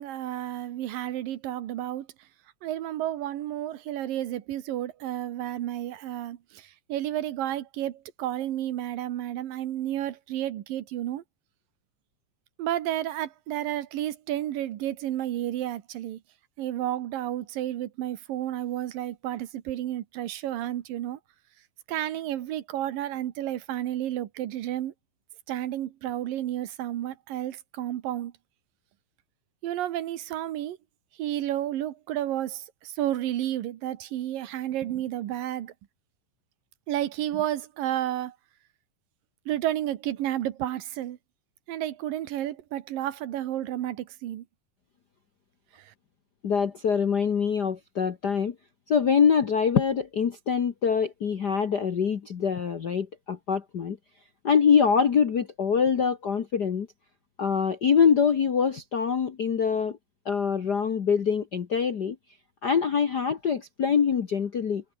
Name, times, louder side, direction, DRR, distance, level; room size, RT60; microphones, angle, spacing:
voice 1, 0.0-2.1 2.6-11.2 12.6-16.2 16.6-21.2 21.9-24.9 25.5-28.3 29.6-30.8 31.2-35.7 36.9-38.4 39.5-41.2 41.7-44.4 45.8-45.9, right 12 dB, 85° right, 3.1 m, -31 dB
voice 2, 46.4-48.5 48.9-54.0 54.4-56.9 57.4-60.0 60.2-62.2 62.6-64.8, left 6 dB, 75° left, 0.9 m, -24 dB
omnidirectional pair, 3.9 m